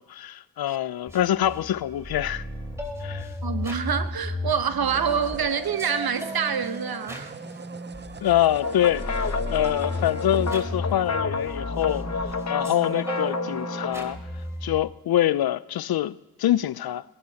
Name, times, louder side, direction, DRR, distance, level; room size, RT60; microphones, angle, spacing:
voice 1, 0.0-2.4 3.0-3.3 8.2-12.0 12.5-14.2 14.6-17.0, left 12 dB, 75° left, 0.5 m, -25 dB
sound 1, 0.9-1.0 4.8-11.9, right 5 dB, 30° right, 0.6 m, -44 dB
sound 2, 1.1-14.8, left 1 dB, 10° right, 2.8 m, -34 dB
voice 2, 3.4-7.3, right 7 dB, 75° right, 1.0 m, -26 dB
sound 3, 8.6-14.1, left 4 dB, 45° left, 0.9 m, -31 dB
21.5 x 17.5 x 2.8 m
cardioid pair, 40°, 37 cm